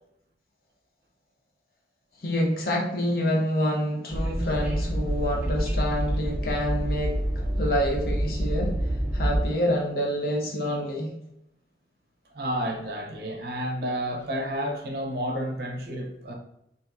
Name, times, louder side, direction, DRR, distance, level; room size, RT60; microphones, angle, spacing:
voice 1, 2.2-8.8 9.1-11.1, equal, 55° left, 0.6 m, -27 dB
Train, 4.1-9.5, right 1 dB, 10° right, 0.3 m, -27 dB
voice 2, 12.3-16.3, equal, 55° right, 0.5 m, -30 dB
3.3 x 2.5 x 2.5 m
head